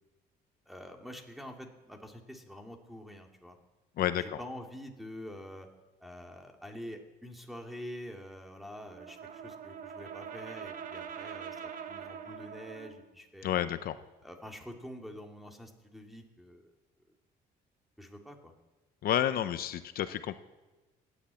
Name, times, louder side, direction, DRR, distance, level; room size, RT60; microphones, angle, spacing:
voice 1, 0.7-3.6 4.1-5.7 6.0-13.6 14.2-16.7 18.0-18.5, equal, ahead, 3 dB, 2.4 m, -46 dB
voice 2, 4.0-4.4 13.4-14.0 19.0-20.4, left 11 dB, 60° left, 11 dB, 0.8 m, -30 dB
Brass instrument, 8.9-13.0, right 7 dB, 55° right, 1.4 m, -43 dB
17.5 x 10.0 x 8.3 m, 1.2 s
cardioid pair, 110°, 17 cm